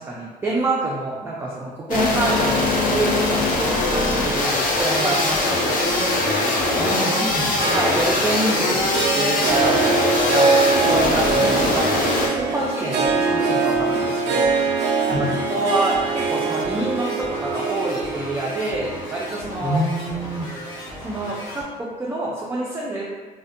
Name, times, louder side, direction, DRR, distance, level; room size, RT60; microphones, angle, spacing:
voice 1, 0.0-5.6 7.7-10.0 10.3-10.5 10.8-19.8 21.0-23.0, right 2 dB, 15° right, -5 dB, 0.3 m, -27 dB
sound 1, 1.9-12.3, left 2 dB, 55° left, 0.5 m, -22 dB
Harp, 2.1-20.6, right 4 dB, 85° right, 0.4 m, -25 dB
sound 2, 2.6-21.6, left 1 dB, 80° left, 0.8 m, -37 dB
voice 2, 6.7-7.8 15.1-15.3 19.6-20.5, equal, 15° left, -8 dB, 0.8 m, -26 dB
2.4 x 2.1 x 2.5 m, 1.3 s
cardioid pair, 110°, 17 cm